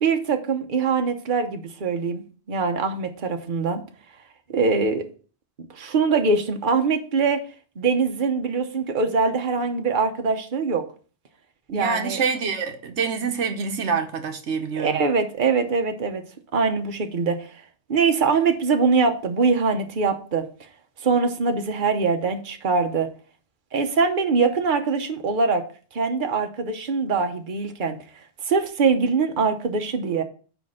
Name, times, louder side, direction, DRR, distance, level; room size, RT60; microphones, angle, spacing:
voice 1, 0.0-2.2 2.5-3.8 4.5-5.1 5.7-7.4 7.8-10.9 11.7-12.2 14.8-16.2 16.5-17.5 17.9-20.5 21.0-23.1 23.7-25.7 25.9-28.0 28.5-30.2, right 4 dB, 50° right, 1.1 m, -23 dB
voice 2, 11.7-15.0, right 5 dB, 90° right, 1.3 m, -26 dB
9.6 x 3.5 x 6.4 m
omnidirectional pair, 1.1 m